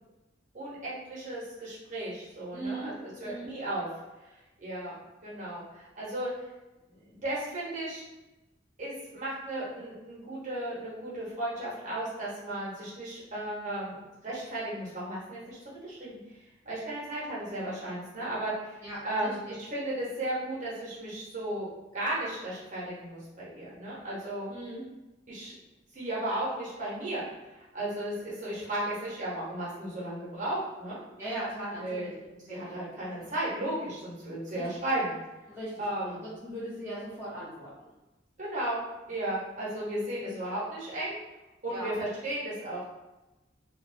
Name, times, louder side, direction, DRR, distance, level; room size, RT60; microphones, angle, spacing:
voice 1, 0.5-3.9 4.6-4.9 5.2-6.3 7.0-8.0 8.8-16.2 16.7-18.8 19.0-21.7 21.9-24.5 25.3-25.5 25.9-27.2 27.7-31.0 31.8-32.1 32.5-35.1 35.8-36.2 38.4-38.8 39.1-41.2 41.6-42.9, right 1 dB, 45° right, -7 dB, 0.9 m, -35 dB
voice 2, 2.5-2.9 3.2-3.5 18.8-19.5 24.5-24.8 31.2-32.1 32.5-32.8 34.5-34.7 35.5-37.7 41.7-41.9, right 1 dB, 15° right, -10 dB, 0.5 m, -39 dB
2.4 x 2.0 x 2.5 m, 1.0 s
head